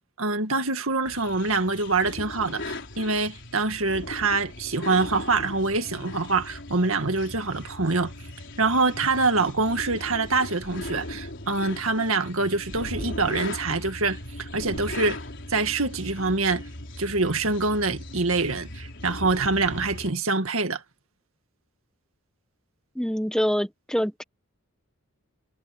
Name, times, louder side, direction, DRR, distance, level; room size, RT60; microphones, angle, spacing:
voice 1, 0.2-8.1 8.6-15.2 15.5-16.6 17.0-20.8, right 3 dB, 70° right, 2.0 m, -25 dB
sound 1, 1.1-20.1, left 1 dB, 55° left, 4.4 m, -38 dB
voice 2, 22.9-24.2, equal, 5° left, 1.3 m, -25 dB
head